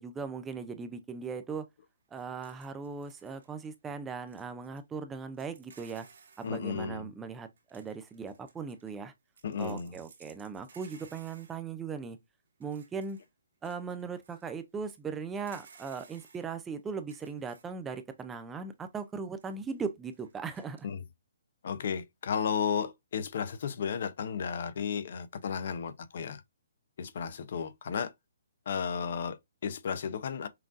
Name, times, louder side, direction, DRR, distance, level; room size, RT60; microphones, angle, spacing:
voice 1, 0.0-1.7 2.1-6.1 6.4-9.1 9.6-12.2 12.6-13.2 13.6-20.9, right 5 dB, 10° right, 0.4 m, -38 dB
sound 1, 2.1-3.6 4.3-4.8 5.3-6.5 7.6-9.0 9.3-11.6 12.6-13.3 13.6-14.5 14.9-15.0 15.4-16.5 16.9-17.7 18.2-18.3 18.8-19.0 19.4-19.8 20.1-20.8, right 5 dB, 65° right, 1.8 m, -58 dB
voice 2, 6.4-7.1 9.4-9.9 20.8-21.0 21.6-26.4 27.0-28.1 28.7-30.5, left 7 dB, 55° left, 0.6 m, -33 dB
5.7 x 2.5 x 2.5 m
hypercardioid pair, 160°, 0 cm